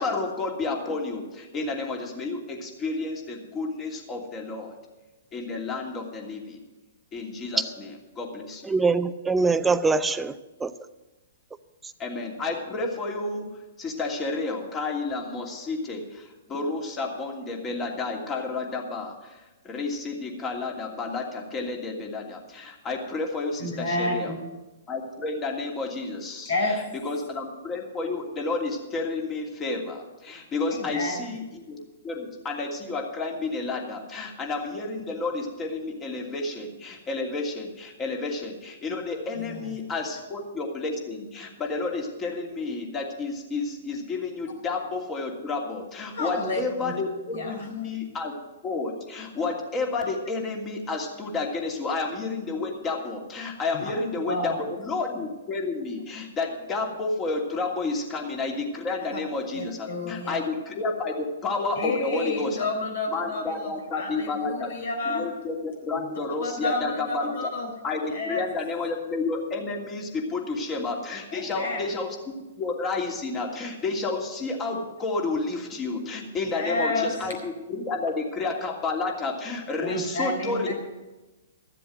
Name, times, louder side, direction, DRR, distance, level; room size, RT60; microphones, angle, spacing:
voice 1, 0.0-4.7 5.3-6.6 7.1-7.9 8.2-8.7 12.0-13.5 13.8-24.3 24.9-31.8 32.0-48.3 48.6-62.7 63.1-64.7 65.0-67.5 67.8-72.2 72.6-80.7, left 3 dB, 25° left, 0 dB, 2.8 m, -31 dB
voice 2, 8.6-10.7, right 4 dB, 10° right, 12 dB, 0.6 m, -23 dB
voice 3, 23.6-24.4 26.5-26.8 30.7-31.2 39.4-39.6 46.1-47.0 47.3-48.0 53.7-53.9 54.3-54.6 59.1-59.2 59.5-60.4 61.8-65.2 66.4-67.7 68.1-68.4 71.3-72.0 76.5-77.3 79.8-80.7, left 2 dB, 70° left, 3 dB, 4.1 m, -30 dB
14.0 x 7.6 x 7.8 m, 1.1 s
hypercardioid pair, 120°, 0 cm